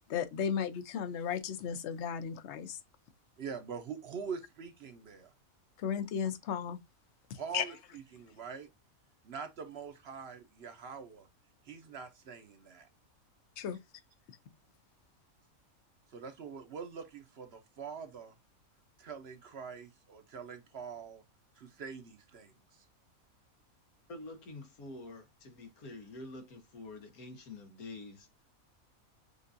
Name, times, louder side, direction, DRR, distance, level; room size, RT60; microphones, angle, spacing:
voice 1, 0.1-2.8 5.8-6.8 7.3-7.6 13.6-13.8, left 7 dB, 60° left, 0.9 m, -35 dB
voice 2, 3.4-5.3 7.3-8.7 9.2-11.3 11.6-12.9 16.1-18.3 19.0-21.2 21.6-22.9, right 6 dB, 55° right, 0.9 m, -44 dB
voice 3, 24.1-28.3, left 2 dB, 85° left, 1.5 m, -47 dB
6.6 x 2.5 x 2.6 m
omnidirectional pair, 1.5 m